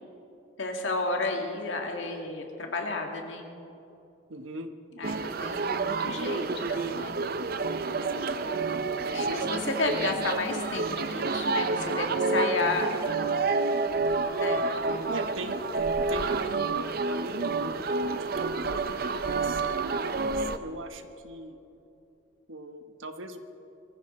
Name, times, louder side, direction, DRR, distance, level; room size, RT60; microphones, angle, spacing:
voice 1, 0.6-3.5 4.9-7.1 9.1-12.9 14.2-14.8, left 3 dB, 65° left, 2 dB, 2.0 m, -32 dB
voice 2, 4.3-4.7 8.1-8.4 15.1-16.7 17.1-17.8 18.1-21.6 22.5-23.4, right 2 dB, 75° right, 7 dB, 1.1 m, -40 dB
sound 1, 5.0-20.6, right 3 dB, 45° right, 0.6 m, -29 dB
22.5 x 14.5 x 4.3 m, 2.8 s
head